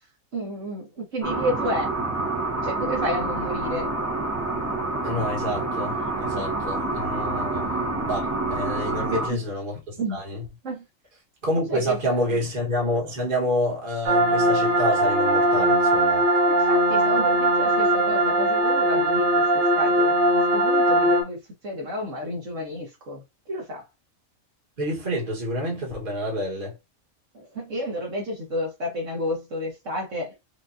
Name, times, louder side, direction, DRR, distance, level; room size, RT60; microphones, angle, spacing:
voice 1, 0.3-1.9 2.6-3.9 7.3-7.4 8.9-9.4 10.0-10.2 10.6-10.8 11.7-12.4 16.4-21.4 21.6-23.8 27.3-30.3, equal, 65° right, 1.6 m, -31 dB
sound 1, 1.2-9.3, right 2 dB, 15° right, 0.9 m, -27 dB
voice 2, 5.0-10.4 11.4-16.3 24.8-26.7, equal, 40° right, 1.6 m, -28 dB
sound 2, 14.1-21.2, right 1 dB, 80° right, 1.4 m, -20 dB
5.2 x 2.5 x 2.6 m
omnidirectional pair, 1.4 m